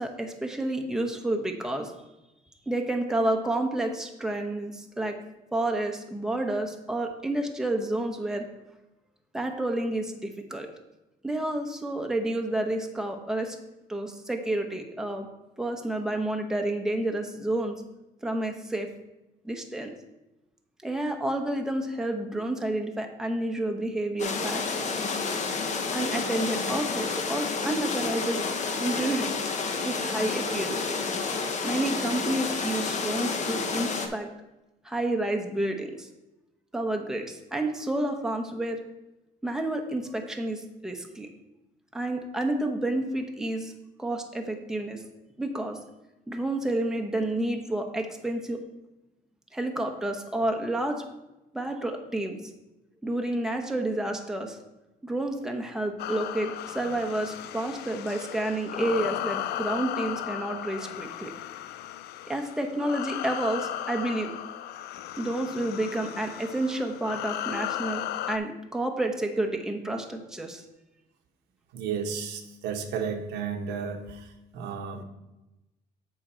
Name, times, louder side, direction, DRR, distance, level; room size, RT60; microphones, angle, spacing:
voice 1, 0.0-1.9 2.7-5.2 5.5-8.5 9.3-10.7 11.2-13.6 13.9-15.3 15.6-17.7 18.2-18.9 19.4-19.9 20.8-24.9 25.9-28.4 28.8-29.5 29.8-31.0 31.5-34.3 34.8-36.1 36.7-38.8 39.4-41.3 41.9-43.7 44.0-45.0 45.4-45.8 46.3-48.6 49.5-51.0 51.5-52.5 53.0-54.6 55.0-61.3 62.3-64.3 65.2-70.6, right 1 dB, 5° right, 3 dB, 1.0 m, -30 dB
sound 1, 24.2-34.1, left 4 dB, 45° left, 1.0 m, -30 dB
sound 2, 56.0-68.4, left 12 dB, 75° left, 0.4 m, -35 dB
voice 2, 71.7-75.0, right 6 dB, 90° right, 4 dB, 1.1 m, -33 dB
7.5 x 5.1 x 4.4 m, 0.98 s
cardioid pair, 110°, 17 cm